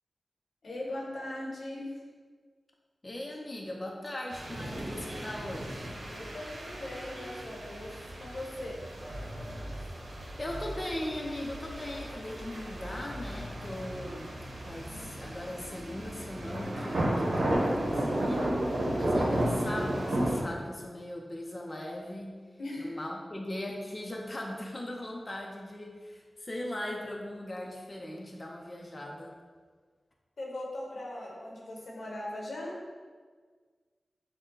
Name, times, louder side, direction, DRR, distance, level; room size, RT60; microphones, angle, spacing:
voice 1, 0.6-2.0 6.1-8.8 22.6-23.0 30.4-32.8, left 1 dB, 85° left, -3 dB, 0.9 m, -39 dB
voice 2, 3.0-5.9 9.7-9.9 10.4-14.4 14.6-22.4 22.8-29.3, left 1 dB, 35° left, -1 dB, 0.6 m, -39 dB
sound 1, 4.3-20.4, right 1 dB, 80° right, 0.8 m, -33 dB
6.3 x 2.2 x 3.8 m, 1.5 s
cardioid pair, 50°, 0 cm